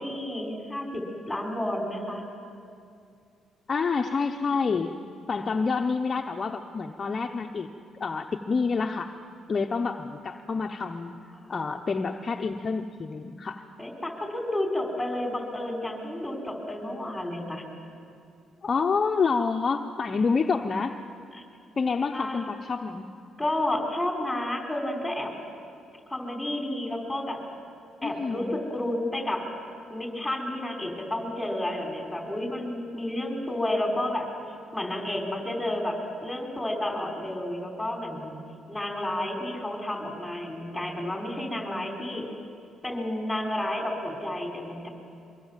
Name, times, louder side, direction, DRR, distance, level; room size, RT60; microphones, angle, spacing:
voice 1, 0.0-2.2 11.4-11.8 13.8-17.6 22.1-22.4 23.4-25.3 26.1-27.4 28.0-29.5 29.9-38.4 38.7-42.3 42.8-44.9, left 1 dB, 5° left, 1 dB, 5.1 m, -31 dB
voice 2, 3.7-5.0 5.3-7.7 8.0-9.1 9.5-11.2 11.5-13.6 18.6-21.0 21.8-23.0 28.0-28.5, left 4 dB, 40° left, 4 dB, 0.9 m, -28 dB
24.0 x 23.0 x 7.5 m, 2.5 s
cardioid pair, 90°, 0 cm